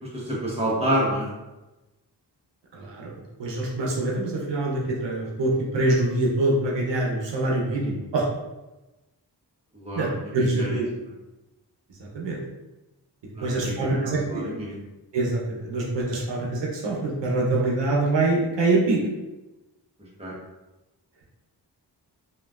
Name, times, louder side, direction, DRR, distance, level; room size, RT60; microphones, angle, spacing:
voice 1, 0.0-1.3 9.7-10.8 13.3-14.8 20.2-20.3, right 1 dB, 15° right, -5 dB, 1.0 m, -28 dB
voice 2, 2.7-3.1 3.4-8.3 9.9-10.6 12.0-12.4 13.4-14.4 15.1-19.0, right 2 dB, 80° right, -3 dB, 0.7 m, -25 dB
3.0 x 2.4 x 2.3 m, 1.1 s
cardioid pair, 60°, 42 cm